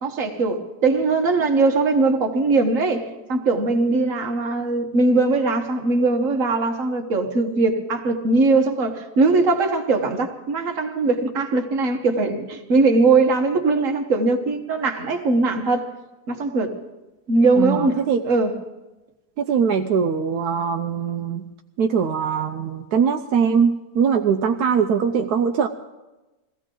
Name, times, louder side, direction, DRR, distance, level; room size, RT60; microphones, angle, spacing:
voice 1, 0.0-3.0 3.3-15.9 16.3-16.8 17.3-18.5, right 3 dB, 55° right, 4 dB, 1.7 m, -20 dB
voice 2, 17.6-18.2 19.4-21.4 21.8-25.7, right 6 dB, 85° right, 5 dB, 1.2 m, -21 dB
21.5 x 15.5 x 3.9 m, 1.1 s
omnidirectional pair, 1.6 m